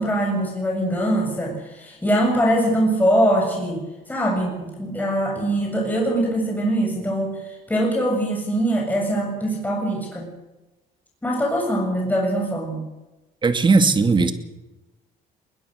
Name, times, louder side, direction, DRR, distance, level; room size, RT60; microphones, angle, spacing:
voice 1, 0.0-7.4 7.7-10.3 11.2-12.8, right 1 dB, 10° left, -1 dB, 7.4 m, -22 dB
voice 2, 13.4-14.3, right 4 dB, 30° right, 8 dB, 2.4 m, -17 dB
21.5 x 20.5 x 6.7 m, 1.0 s
cardioid pair, 110°, 17 cm